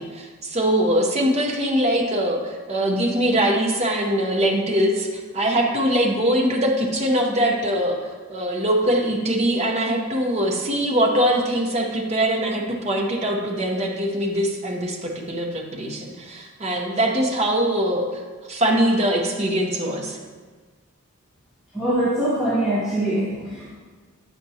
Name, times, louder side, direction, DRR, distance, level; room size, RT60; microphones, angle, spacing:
voice 1, 0.0-8.0 8.3-18.2 18.5-20.2, right 1 dB, 30° right, 0 dB, 0.8 m, -22 dB
voice 2, 21.7-23.7, right 1 dB, 5° right, -11 dB, 1.1 m, -23 dB
8.8 x 5.9 x 2.8 m, 1.5 s
head